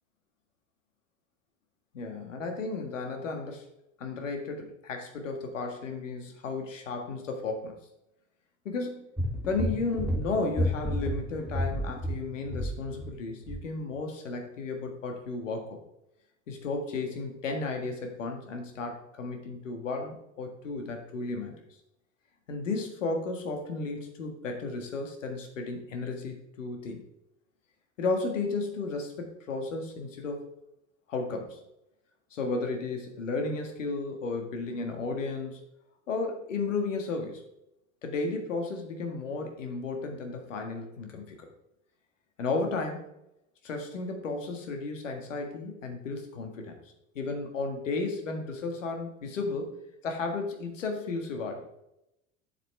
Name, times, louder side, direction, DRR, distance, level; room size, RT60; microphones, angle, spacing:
voice 1, 1.9-3.6 4.0-7.8 8.7-9.1 9.4-15.8 16.5-21.6 22.5-27.0 28.0-30.5 31.1-31.6 32.3-35.6 36.1-37.4 38.0-41.4 42.4-43.1 43.6-46.7 47.2-49.7 50.0-51.7, left 3 dB, 75° left, 4 dB, 1.8 m, -33 dB
sound 1, 9.2-13.2 13.5-13.6, equal, ahead, 1.2 m, -31 dB
8.6 x 7.7 x 3.4 m, 0.85 s
figure-of-eight pair, 75°, 38 cm